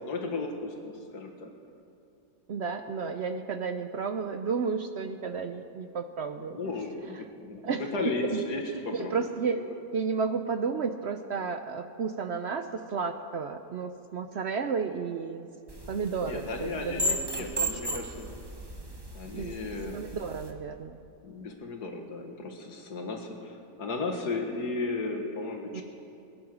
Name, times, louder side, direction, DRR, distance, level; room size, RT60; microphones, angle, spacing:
voice 1, 0.0-1.5 6.4-9.3 9.6-9.8 16.2-18.3 19.1-20.0 21.2-25.8, left 3 dB, 90° left, 3 dB, 2.2 m, -35 dB
voice 2, 2.5-6.6 7.1-7.2 7.6-7.9 8.3-8.4 8.9-9.6 9.9-15.5 15.9-17.5 17.9-18.0 19.3-19.5 19.9-21.0 25.7-25.8, right 5 dB, 60° right, 8 dB, 0.7 m, -32 dB
sound 1, 15.7-20.5, right 1 dB, 20° right, 1.0 m, -35 dB
21.5 x 10.0 x 6.1 m, 2.7 s
omnidirectional pair, 1.6 m